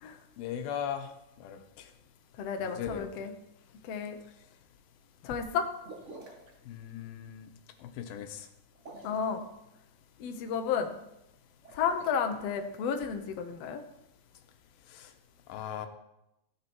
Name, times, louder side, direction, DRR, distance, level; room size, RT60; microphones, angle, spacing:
voice 1, 0.4-1.1 1.4-1.9 2.6-3.3 6.7-7.5 7.8-8.5 14.9-15.1 15.5-15.9, left 9 dB, 90° left, 7 dB, 2.7 m, -38 dB
voice 2, 2.4-3.3 3.9-4.2 5.2-5.7 9.0-9.5 10.2-10.9 11.7-13.8, left 6 dB, 65° left, 5 dB, 1.6 m, -32 dB
sound 1, 5.8-6.5 8.7-9.4 11.5-12.1, right 2 dB, 75° right, 0.6 m, -48 dB
14.5 x 9.5 x 4.5 m, 0.88 s
omnidirectional pair, 4.2 m